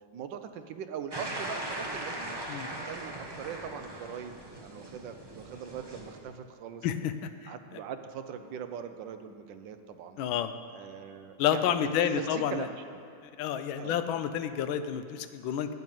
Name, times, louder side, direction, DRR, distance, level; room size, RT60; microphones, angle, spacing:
voice 1, 0.1-2.4 2.9-4.3 4.6-6.9 7.5-10.2 10.7-13.0 13.8-14.0, right 8 dB, 70° right, 8 dB, 1.3 m, -41 dB
sound 1, 1.1-6.2, right 1 dB, 20° right, 0.7 m, -39 dB
voice 2, 6.8-7.1 7.4-7.5 10.2-10.5 11.4-12.7 13.4-15.7, left 9 dB, 85° left, 10 dB, 1.4 m, -29 dB
9.3 x 9.0 x 7.6 m, 2.6 s
omnidirectional pair, 2.2 m